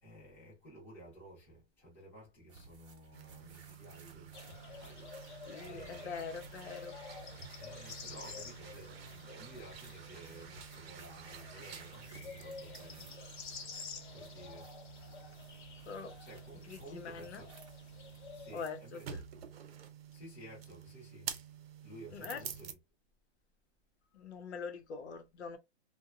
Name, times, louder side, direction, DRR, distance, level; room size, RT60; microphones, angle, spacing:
voice 1, 0.0-6.2 7.6-13.1 14.1-14.7 15.5-15.6 15.8-17.5 18.3-19.2 20.1-21.3 21.8-22.8, right 1 dB, 5° left, 0.6 m, -54 dB
sound 1, 2.5-19.2, right 4 dB, 25° right, 0.7 m, -62 dB
sound 2, 3.1-22.7, right 8 dB, 65° right, 0.7 m, -50 dB
sound 3, 4.3-18.5, left 5 dB, 45° left, 0.8 m, -50 dB
voice 2, 5.4-7.0 15.8-16.2 16.7-17.4 18.5-19.2 22.1-22.4 24.1-25.6, left 5 dB, 80° left, 0.8 m, -43 dB
2.8 x 2.2 x 2.4 m
hypercardioid pair, 165°, 33 cm